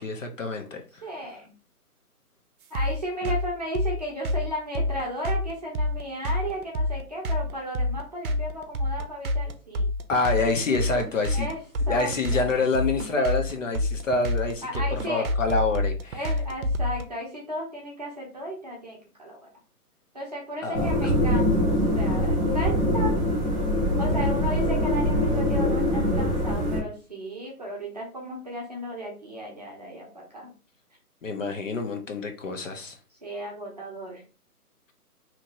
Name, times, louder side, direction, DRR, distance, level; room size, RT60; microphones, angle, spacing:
voice 1, 0.0-1.0 3.2-3.3 10.1-11.5 11.9-16.3 20.6-21.1 31.2-33.0, left 3 dB, 55° left, 5 dB, 0.6 m, -27 dB
voice 2, 1.0-1.5 2.7-9.9 11.3-11.6 11.9-12.6 14.6-15.3 16.1-19.5 20.1-23.1 24.0-30.5 33.2-34.2, equal, 25° right, -3 dB, 0.7 m, -35 dB
sound 1, 2.7-17.0, left 1 dB, 65° right, 0.6 m, -27 dB
sound 2, 20.7-26.8, equal, 10° left, 0.7 m, -23 dB
2.9 x 2.5 x 2.8 m, 0.34 s
hypercardioid pair, 160°, 46 cm